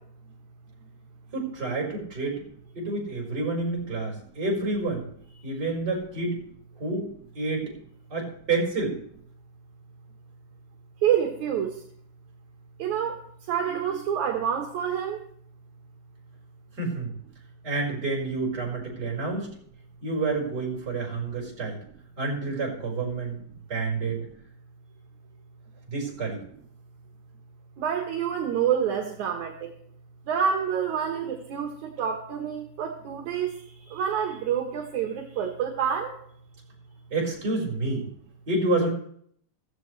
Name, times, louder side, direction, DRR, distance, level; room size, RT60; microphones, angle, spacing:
voice 1, 1.3-2.4 2.7-5.0 5.4-6.4 6.8-7.1 7.4-7.7 8.1-9.0 16.8-17.1 17.6-19.5 20.0-21.8 22.2-23.4 23.7-24.3 25.9-26.4 37.1-38.1 38.5-38.9, right 3 dB, 30° right, -2 dB, 5.7 m, -28 dB
voice 2, 11.0-11.7 12.8-13.2 13.5-15.2 27.8-29.5 30.3-33.5 33.9-36.1, right 8 dB, 70° right, 3 dB, 2.6 m, -27 dB
15.5 x 15.5 x 3.3 m, 0.64 s
omnidirectional pair, 3.6 m